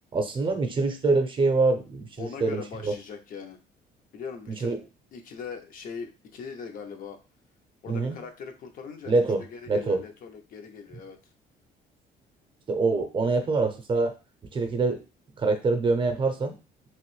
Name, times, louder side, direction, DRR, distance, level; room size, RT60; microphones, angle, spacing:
voice 1, 0.1-2.9 4.6-4.8 7.9-8.2 9.1-10.0 12.7-14.1 14.5-15.0 15.4-16.5, right 3 dB, 30° right, 6 dB, 0.6 m, -25 dB
voice 2, 2.2-3.6 4.1-7.2 7.8-11.2, left 6 dB, 55° left, 5 dB, 0.6 m, -41 dB
3.0 x 2.6 x 3.1 m, 0.31 s
cardioid pair, 110°, 17 cm